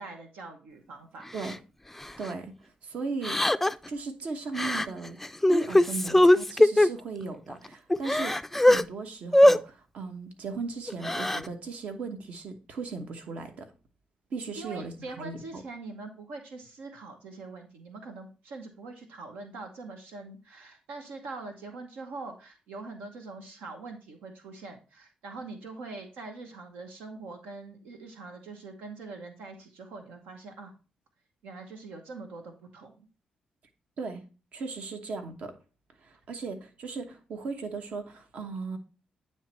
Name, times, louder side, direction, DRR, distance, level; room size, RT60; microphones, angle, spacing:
voice 1, 0.0-1.3 14.6-30.7 31.4-33.1, right 3 dB, 90° right, 4 dB, 0.9 m, -43 dB
Crying sobbing, 1.4-1.6 2.0-2.3 3.2-3.9 4.6-4.9 5.2-6.9 7.5-7.6 7.9-8.8 9.3-9.6 10.9-11.5, left 1 dB, 10° left, 0.3 m, -21 dB
voice 2, 2.2-2.5 2.8-3.4 3.9-5.2 5.5-8.3 8.6-13.7 14.3-15.6 34.0-34.2 34.5-35.5 36.0-38.8, right 4 dB, 65° right, 6 dB, 1.1 m, -37 dB
9.2 x 3.1 x 4.3 m, 0.33 s
cardioid pair, 70°, 3 cm